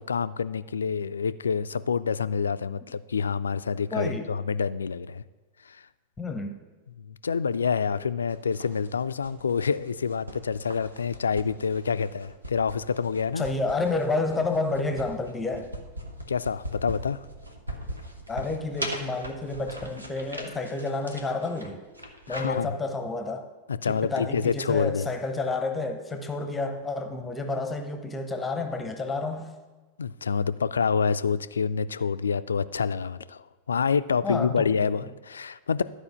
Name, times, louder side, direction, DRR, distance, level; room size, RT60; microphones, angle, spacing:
voice 1, 0.0-5.2 5.7-5.8 7.0-13.5 16.3-17.2 22.3-22.8 23.7-25.1 30.0-35.8, left 6 dB, 70° left, 14 dB, 0.3 m, -27 dB
voice 2, 3.9-4.3 6.2-6.6 13.4-15.7 18.3-21.8 22.3-23.5 23.9-29.5 34.2-34.9, left 3 dB, 10° left, 6 dB, 0.8 m, -30 dB
sound 1, 8.3-22.4, equal, 85° right, 1.0 m, -41 dB
12.0 x 4.9 x 6.3 m, 1.2 s
figure-of-eight pair, 90°, 0 cm